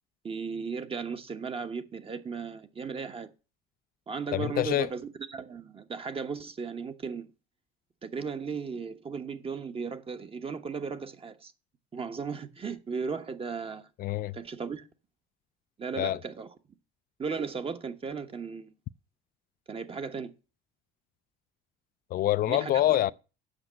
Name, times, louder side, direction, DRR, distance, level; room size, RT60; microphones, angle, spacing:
voice 1, 0.2-3.3 4.1-5.0 5.3-7.3 8.0-11.5 11.9-13.9 14.3-14.9 15.8-16.5 17.2-18.7 19.7-20.3 22.5-23.0, right 5 dB, 30° right, 1.1 m, -36 dB
voice 2, 4.3-4.9 14.0-14.3 16.0-16.2 22.1-23.1, left 14 dB, 50° left, 0.4 m, -26 dB
8.1 x 6.0 x 7.6 m
supercardioid pair, 95°, 19 cm